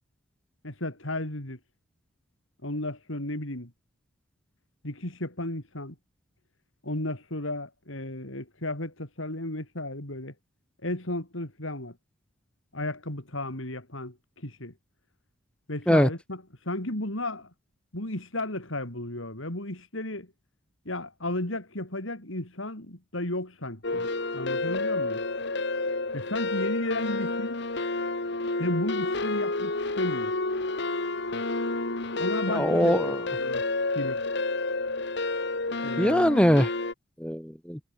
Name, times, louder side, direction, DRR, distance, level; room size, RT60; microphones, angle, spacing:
voice 1, 0.6-1.6 2.6-3.7 4.8-6.0 6.8-10.3 10.8-12.0 12.7-14.7 15.7-17.5 17.9-20.3 20.8-24.1 24.3-25.2 26.1-27.6 28.6-30.3 32.2-33.1 33.4-33.6 33.9-34.2 35.8-36.3, left 1 dB, 75° left, 4.9 m, -34 dB
sound 1, 23.8-36.9, left 2 dB, 60° left, 1.9 m, -30 dB
voice 2, 32.5-33.2 36.0-36.7 37.2-37.8, equal, 5° left, 3.0 m, -22 dB
head